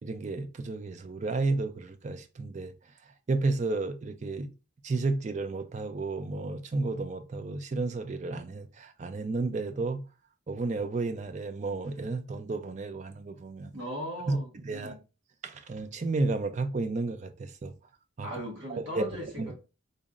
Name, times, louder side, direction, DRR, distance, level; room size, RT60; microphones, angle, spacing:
voice 1, 0.0-2.7 3.3-4.5 4.8-10.0 10.5-13.7 14.3-15.0 15.4-17.7 18.2-18.3 18.7-19.5, right 3 dB, 35° right, 0.3 m, -32 dB
voice 2, 13.7-15.0 18.2-19.6, equal, 60° right, 0.9 m, -38 dB
3.9 x 2.1 x 3.6 m
head